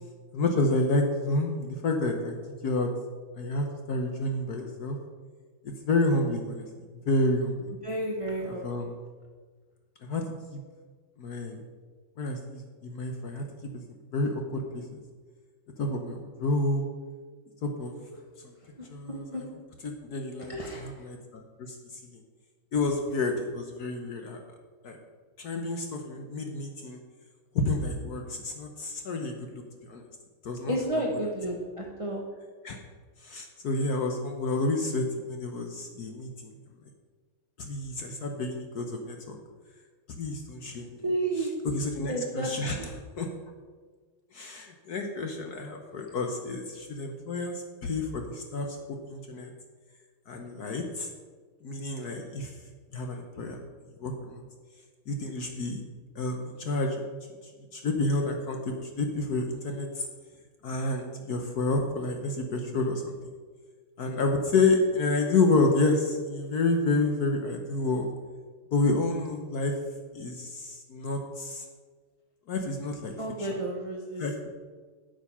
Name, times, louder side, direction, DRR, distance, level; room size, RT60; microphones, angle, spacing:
voice 1, 0.3-2.4 2.6-2.9 3.4-5.0 5.6-6.7 7.1-7.7 8.4-8.9 10.0-10.2 10.5-10.6 11.2-11.6 12.2-13.4 13.7-13.8 14.1-14.8 15.8-16.9 17.6-17.9 18.4-18.5 18.9-19.4 19.8-22.2 22.7-24.4 24.8-25.0 25.4-27.0 27.5-30.0 30.4-30.8 32.6-32.8 33.2-36.5 37.6-39.4 40.2-41.0 41.4-43.3 44.3-49.5 50.3-51.1 51.6-52.6 52.9-53.6 54.0-54.4 55.1-55.8 56.1-57.0 57.7-60.0 60.6-63.2 64.0-68.1 68.7-69.8 70.1-71.6 72.5-73.1 73.4-73.6 74.2-74.3, left 2 dB, 55° left, 3 dB, 1.2 m, -29 dB
voice 2, 7.8-8.9 18.8-18.9 19.3-19.4 20.5-20.9 30.7-32.2 41.0-41.6 42.1-42.9 73.2-74.2, right 1 dB, 30° right, -1 dB, 0.6 m, -31 dB
8.8 x 8.0 x 5.7 m, 1.5 s
omnidirectional pair, 2.4 m